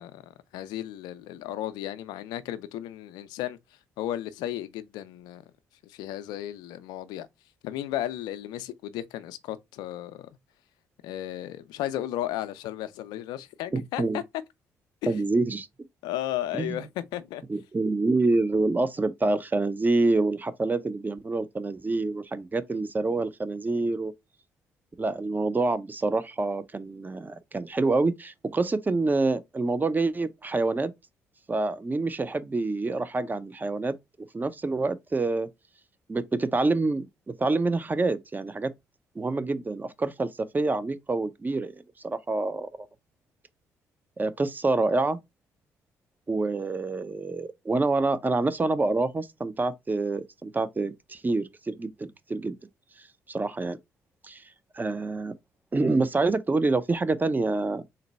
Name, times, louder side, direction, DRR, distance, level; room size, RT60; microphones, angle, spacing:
voice 1, 0.0-3.6 4.0-5.4 5.8-7.3 7.6-10.3 11.0-14.2 15.0-15.2 16.0-17.4, left 13 dB, 75° left, 0.4 m, -34 dB
voice 2, 13.7-14.2 15.1-15.7 16.5-16.9 17.5-24.1 25.0-30.9 31.5-33.9 34.3-35.5 36.1-38.7 39.2-40.3 40.5-41.7 42.0-42.7 44.2-45.2 46.3-52.5 53.0-53.8 54.2-54.4 54.7-55.3 55.7-57.8, right 3 dB, 25° right, 0.6 m, -27 dB
3.9 x 2.2 x 4.1 m
hypercardioid pair, 50°, 7 cm